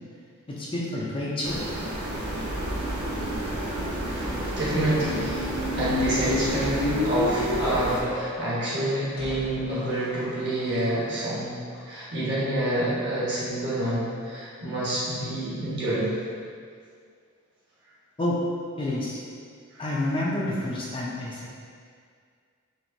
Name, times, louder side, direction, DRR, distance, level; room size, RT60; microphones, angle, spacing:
voice 1, 0.5-1.6 18.2-18.4 18.8-19.2 19.8-21.5, left 1 dB, 25° left, -5 dB, 0.5 m, -29 dB
sound 1, 1.4-8.0, right 1 dB, 85° right, 0.8 m, -31 dB
voice 2, 4.0-11.5 11.8-16.2 19.7-19.8, right 1 dB, 50° right, -8 dB, 1.3 m, -28 dB
sound 2, 4.9-10.8, left 2 dB, 90° left, 1.1 m, -31 dB
4.4 x 3.3 x 2.7 m, 2.1 s
head